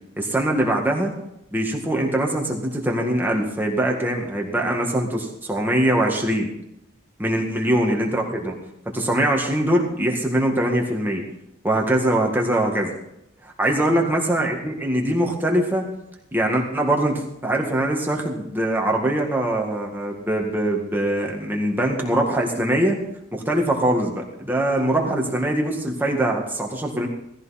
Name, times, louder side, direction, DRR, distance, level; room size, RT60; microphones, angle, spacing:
voice 1, 0.2-1.1 1.5-6.5 7.2-8.6 8.9-11.2 11.6-12.9 13.4-15.9 16.3-23.0 23.3-27.1, right 1 dB, 10° right, 0 dB, 1.9 m, -22 dB
18.0 x 14.0 x 4.3 m, 0.84 s
head